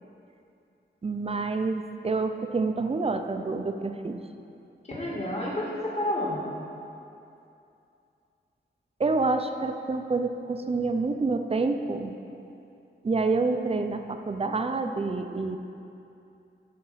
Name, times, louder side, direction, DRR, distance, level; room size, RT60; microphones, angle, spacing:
voice 1, 1.0-4.2 9.0-12.1 13.0-15.6, right 3 dB, 30° right, 6 dB, 0.5 m, -28 dB
voice 2, 4.8-6.4, left 1 dB, 35° left, -6 dB, 1.8 m, -30 dB
13.0 x 4.4 x 5.7 m, 2.7 s
wide cardioid pair, 140°, 19 cm